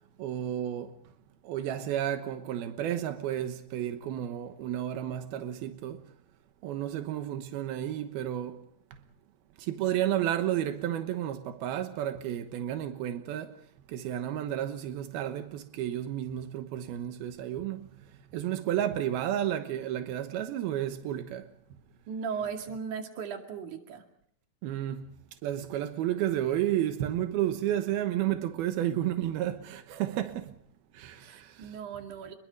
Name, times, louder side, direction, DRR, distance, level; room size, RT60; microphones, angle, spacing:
voice 1, 0.2-1.0 1.4-6.1 6.6-8.6 9.6-13.6 13.9-17.9 18.3-21.5 24.6-25.1 25.4-30.6 30.9-31.7, right 11 dB, 90° right, 3.1 m, -32 dB
voice 2, 22.1-24.0 31.2-32.3, right 6 dB, 60° right, 3.6 m, -37 dB
28.0 x 22.0 x 5.2 m
omnidirectional pair, 4.2 m